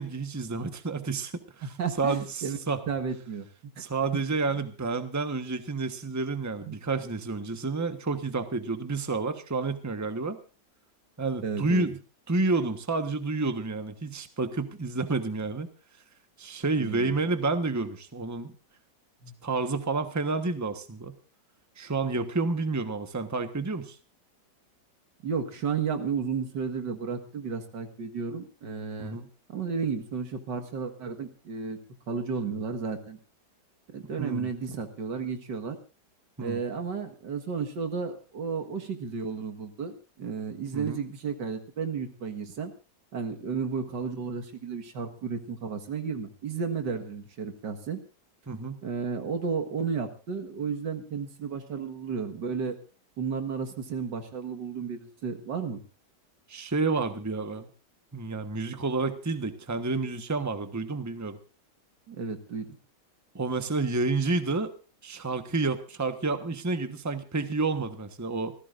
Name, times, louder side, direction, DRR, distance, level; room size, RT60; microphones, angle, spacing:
voice 1, 0.0-1.7 2.0-2.8 3.8-10.4 11.2-12.0 12.3-15.7 16.4-18.5 19.4-21.1 21.8-24.0 29.0-29.3 34.2-34.5 36.4-36.6 40.7-41.0 48.5-48.8 56.5-57.7 58.1-61.4 63.3-64.7 65.0-68.5, right 3 dB, 10° right, 8 dB, 1.1 m, -30 dB
voice 2, 1.6-2.6 2.9-3.5 3.8-3.9 6.6-6.8 11.4-11.9 16.8-17.1 19.2-19.3 25.2-29.2 29.5-31.8 32.1-33.2 33.9-35.8 36.4-42.7 43.1-48.0 48.8-52.8 53.2-55.8 62.1-62.7, right 5 dB, 80° right, 5 dB, 2.3 m, -33 dB
27.0 x 15.5 x 2.6 m, 0.35 s
omnidirectional pair, 1.9 m